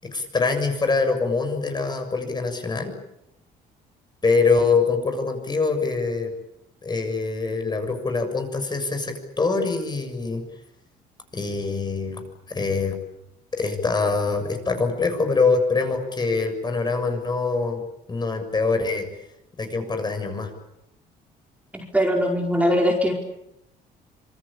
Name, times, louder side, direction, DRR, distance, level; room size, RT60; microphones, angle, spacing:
voice 1, 0.0-2.9 4.2-6.3 6.8-10.4 11.3-12.2 12.5-13.0 13.5-17.8 18.1-19.1 19.6-20.5, left 4 dB, 25° left, 6 dB, 6.9 m, -24 dB
voice 2, 21.7-23.1, equal, 10° right, 1 dB, 4.9 m, -21 dB
26.5 x 25.0 x 8.8 m, 0.84 s
cardioid pair, 110°, 17 cm